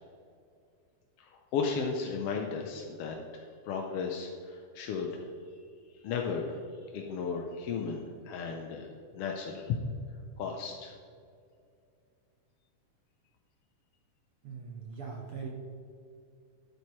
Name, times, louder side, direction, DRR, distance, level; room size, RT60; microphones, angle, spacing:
voice 1, 1.2-5.3 6.0-6.6 6.9-9.8 10.4-10.9, left 5 dB, 70° left, 1 dB, 1.5 m, -35 dB
voice 2, 14.4-15.5, right 5 dB, 60° right, 1 dB, 1.5 m, -41 dB
12.0 x 10.0 x 3.2 m, 2.4 s
omnidirectional pair, 3.4 m